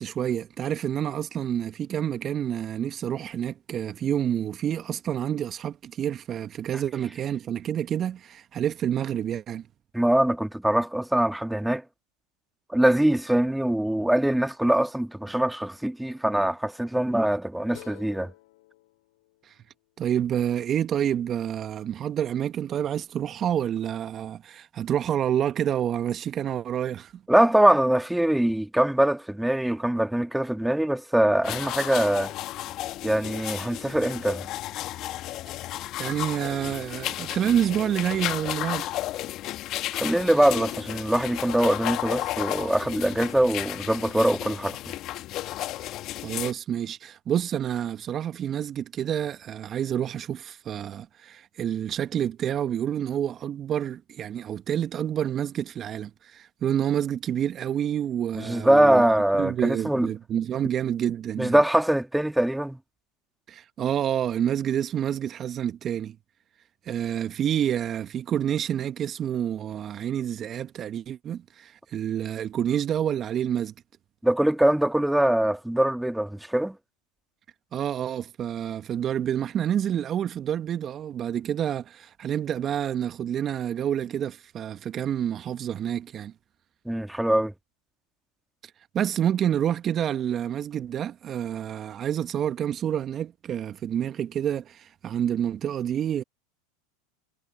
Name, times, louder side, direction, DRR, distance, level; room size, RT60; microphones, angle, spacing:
voice 1, 0.0-9.6 19.4-19.5 20.0-27.1 36.0-38.9 46.2-61.6 63.5-66.2 66.8-73.7 77.7-86.3 88.6-96.2, right 9 dB, 35° right, 1.4 m, -28 dB
voice 2, 9.9-11.8 12.7-18.3 27.3-32.3 33.0-34.5 39.9-44.8 58.4-60.1 61.4-62.8 74.2-76.8 86.9-87.5, right 1 dB, 5° right, 1.8 m, -23 dB
sound 1, 17.7-20.9, left 19 dB, 70° left, 7.1 m, -52 dB
sound 2, 31.4-46.5, left 15 dB, 45° left, 1.7 m, -33 dB
hypercardioid pair, 90°, 0 cm